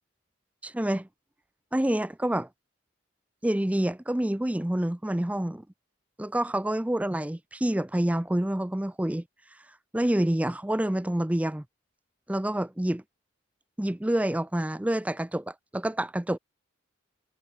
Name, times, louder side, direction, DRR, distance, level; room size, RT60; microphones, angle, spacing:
voice 1, 0.6-1.1 1.7-2.5 3.4-5.6 6.2-9.2 9.9-11.6 12.3-13.0 13.8-16.4, right 1 dB, 5° right, 0.4 m, -27 dB
head